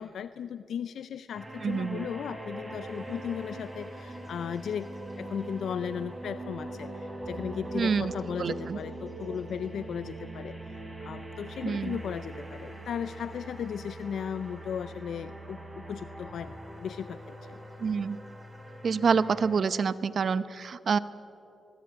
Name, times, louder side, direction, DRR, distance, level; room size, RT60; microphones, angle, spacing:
voice 1, 0.0-4.9 5.2-17.6, left 8 dB, 80° left, 13 dB, 0.5 m, -36 dB
sound 1, 1.3-19.6, right 1 dB, 20° right, 5.4 m, -42 dB
voice 2, 1.6-2.1 7.7-8.1 8.4-8.8 11.6-12.0 17.8-18.2 18.8-21.0, right 5 dB, 60° right, 16 dB, 0.8 m, -27 dB
21.5 x 21.0 x 8.9 m, 2.8 s
cardioid pair, 70°, 0 cm